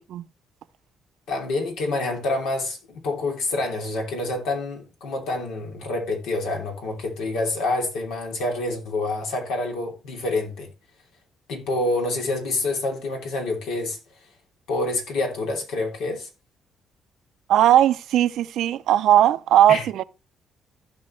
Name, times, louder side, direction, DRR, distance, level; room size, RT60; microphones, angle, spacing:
voice 1, 1.3-10.7 11.5-14.0 14.7-16.3 19.7-19.9, left 2 dB, 90° left, 2.9 m, -27 dB
voice 2, 17.5-20.0, right 11 dB, 80° right, 0.5 m, -18 dB
16.0 x 5.4 x 3.2 m
cardioid pair, 90°, 0 cm